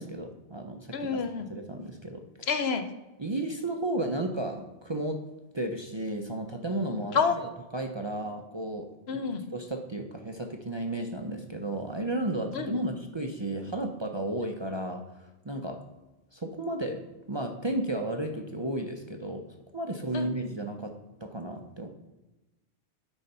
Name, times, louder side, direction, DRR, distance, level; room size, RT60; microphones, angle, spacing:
voice 1, 0.0-1.2 1.5-2.5 3.2-5.2 5.5-9.2 9.5-15.0 15.4-15.8 16.3-17.0 17.3-19.4 19.7-20.9 21.2-21.9, right 1 dB, 30° right, 4 dB, 0.6 m, -33 dB
voice 2, 0.9-1.4 2.5-2.8 7.1-7.4 9.1-9.4 12.5-12.9 20.1-20.5, left 5 dB, 70° left, 8 dB, 1.0 m, -28 dB
10.0 x 4.0 x 5.5 m, 1.0 s
omnidirectional pair, 1.1 m